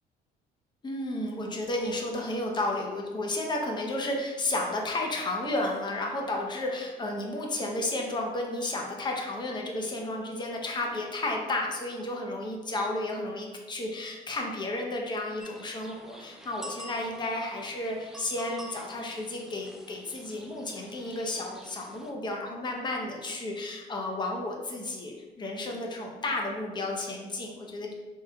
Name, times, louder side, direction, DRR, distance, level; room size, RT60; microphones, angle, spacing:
voice 1, 0.8-27.9, left 2 dB, 25° left, 0 dB, 0.7 m, -32 dB
sound 1, 15.4-22.1, right 1 dB, 5° right, 0.3 m, -47 dB
3.8 x 3.6 x 2.3 m, 1.2 s
cardioid pair, 110°, 17 cm